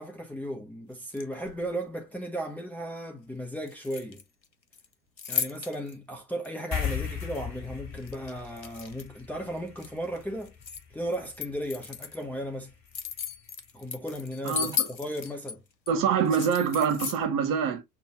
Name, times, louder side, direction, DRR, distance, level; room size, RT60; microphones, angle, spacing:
voice 1, 0.0-4.2 5.3-10.5 10.9-12.7 13.7-15.6, equal, 5° left, 1.0 m, -35 dB
sound 1, 1.0-1.7 3.6-4.4 4.7-5.9 6.4-6.5 8.0-9.2 9.6-10.8 11.1-12.2 12.6-15.5 15.9-16.0 16.2-17.2, left 7 dB, 90° left, 0.7 m, -35 dB
sound 2, 6.7-13.5, left 7 dB, 30° left, 2.2 m, -39 dB
voice 2, 14.4-14.9 15.9-17.8, right 7 dB, 40° right, 1.3 m, -25 dB
6.2 x 3.0 x 2.9 m
figure-of-eight pair, 75°, 50 cm